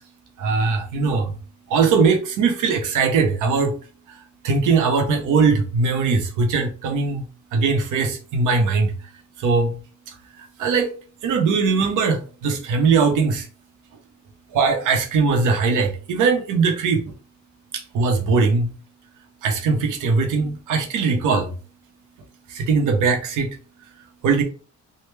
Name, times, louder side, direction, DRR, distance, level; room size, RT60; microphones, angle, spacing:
voice 1, 0.4-1.3 1.7-3.7 4.4-7.2 7.5-8.9 9.4-9.7 10.6-10.9 11.2-12.2 12.4-13.4 14.5-17.0 17.9-18.7 19.4-21.4 22.7-23.5 24.2-24.4, right 4 dB, 85° right, 0.8 m, -20 dB
3.2 x 2.2 x 3.2 m
cardioid pair, 90°, 30 cm